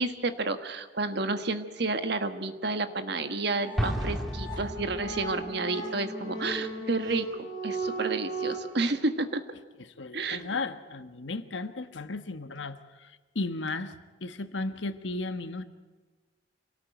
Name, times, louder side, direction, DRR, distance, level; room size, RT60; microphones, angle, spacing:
voice 1, 0.0-9.4 10.1-10.4, right 3 dB, 55° right, 9 dB, 1.5 m, -30 dB
sound 1, 3.2-8.5, right 2 dB, 20° left, 6.4 m, -36 dB
Explosion, 3.8-5.5, equal, ahead, 2.0 m, -32 dB
voice 2, 10.0-15.6, left 3 dB, 70° left, 10 dB, 1.3 m, -35 dB
26.0 x 18.0 x 9.0 m, 1.3 s
head